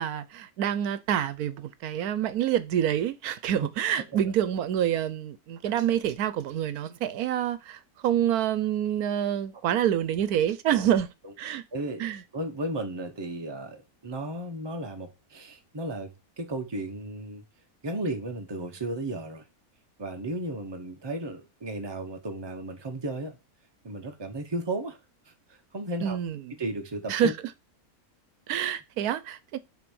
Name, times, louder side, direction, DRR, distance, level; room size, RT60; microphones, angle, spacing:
voice 1, 0.0-11.1 11.4-11.6 12.0-12.2 26.0-26.6 27.1-27.3 28.5-29.6, right 10 dB, 80° right, 1.2 m, -27 dB
voice 2, 11.7-12.0 12.3-17.4 17.8-19.5 20.0-23.4 23.8-25.0 25.5-26.2 26.6-27.3, right 1 dB, 20° right, 1.0 m, -34 dB
6.0 x 4.1 x 6.2 m
omnidirectional pair, 1.6 m